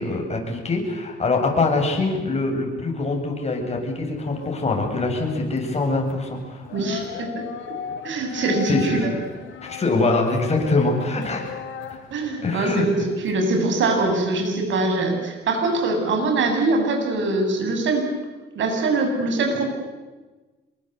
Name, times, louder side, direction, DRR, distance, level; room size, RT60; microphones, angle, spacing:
voice 1, 0.0-6.7 8.3-9.0 9.6-11.5 11.9-12.0 12.4-12.8, left 3 dB, 30° left, 2 dB, 7.9 m, -24 dB
sound 1, 4.2-15.1, left 8 dB, 80° left, 3.4 m, -38 dB
voice 2, 6.7-7.4 8.0-9.1 12.1-18.1 18.5-19.7, right 3 dB, 70° right, 4 dB, 7.9 m, -23 dB
27.0 x 23.5 x 8.3 m, 1.2 s
cardioid pair, 90°, 20 cm